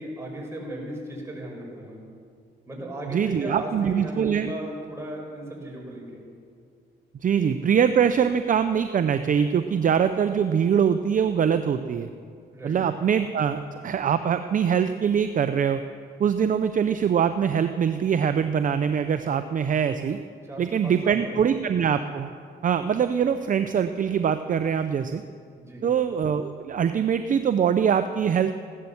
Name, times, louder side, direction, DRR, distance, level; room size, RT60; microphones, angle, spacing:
voice 1, 0.0-2.0 2.7-6.2 12.5-12.8 20.4-21.4 25.6-25.9, right 1 dB, 15° right, -2 dB, 5.4 m, -36 dB
voice 2, 3.1-4.5 7.2-12.1 12.6-15.8 16.2-20.2 20.6-22.3 22.6-25.2 25.8-28.5, right 7 dB, 40° right, 10 dB, 0.6 m, -23 dB
15.5 x 12.0 x 7.1 m, 2.3 s
cardioid pair, 90°, 20 cm